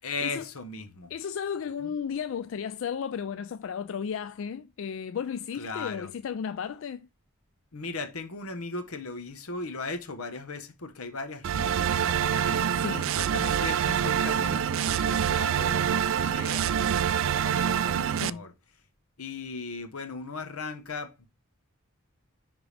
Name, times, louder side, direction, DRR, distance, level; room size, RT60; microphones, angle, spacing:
voice 1, 0.0-1.1 1.8-1.9 5.6-6.1 7.7-12.8 13.2-15.9 16.3-18.5 19.2-21.3, left 3 dB, 85° left, 1.1 m, -38 dB
voice 2, 1.1-7.1 12.7-13.1 18.1-18.5, left 7 dB, 65° left, 0.3 m, -34 dB
sound 1, 11.4-18.3, right 8 dB, 65° right, 0.3 m, -26 dB
10.0 x 3.7 x 3.3 m
head